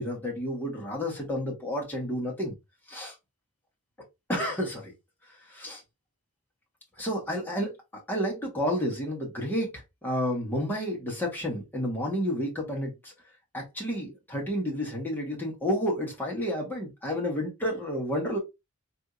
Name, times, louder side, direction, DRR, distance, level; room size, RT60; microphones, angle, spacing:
voice 1, 0.0-2.5 2.9-3.1 4.3-4.9 5.5-5.8 7.0-13.1 13.5-18.4, equal, 10° left, 1.2 m, -31 dB
4.2 x 2.7 x 2.4 m
head